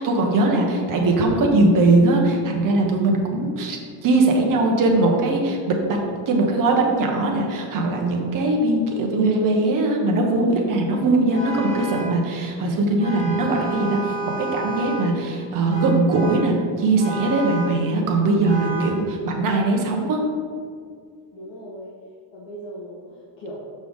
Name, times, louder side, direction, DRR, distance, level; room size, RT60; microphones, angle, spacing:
voice 1, 0.0-6.0 6.3-20.2, right 2 dB, 40° right, 1 dB, 1.1 m, -20 dB
Vehicle horn car horn honking, 11.3-12.2 13.0-15.2 15.7-16.5 17.0-17.8 18.4-19.0, right 2 dB, 15° left, 1.5 m, -31 dB
voice 2, 21.3-21.9 22.3-23.6, equal, 65° left, -4 dB, 1.3 m, -38 dB
6.4 x 5.9 x 3.6 m, 2.1 s
cardioid pair, 160°, 47 cm